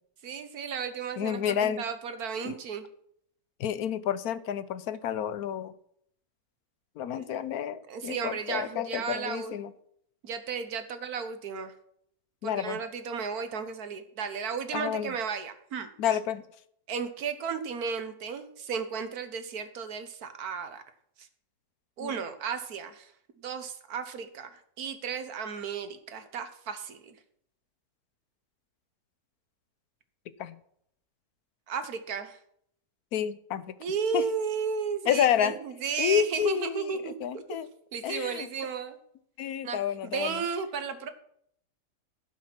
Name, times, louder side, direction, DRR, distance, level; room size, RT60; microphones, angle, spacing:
voice 1, 0.2-2.9 7.2-7.3 7.9-9.6 10.2-11.7 12.4-15.9 16.9-20.8 21.2-21.3 22.0-23.1 23.4-27.2 31.7-32.4 33.8-37.6 37.9-39.0 39.6-41.1, right 6 dB, 80° right, 10 dB, 1.6 m, -34 dB
voice 2, 1.2-1.8 2.4-2.6 3.6-5.7 7.0-9.7 12.4-12.8 14.7-15.1 16.0-16.4 22.0-22.1 30.4-30.6 33.1-33.7 34.1-34.2 35.1-35.6 36.0-36.9 37.2-37.7 38.0-38.5 39.4-40.4, left 9 dB, 80° left, 14 dB, 1.2 m, -29 dB
16.0 x 5.7 x 5.9 m, 0.69 s
omnidirectional pair, 1.6 m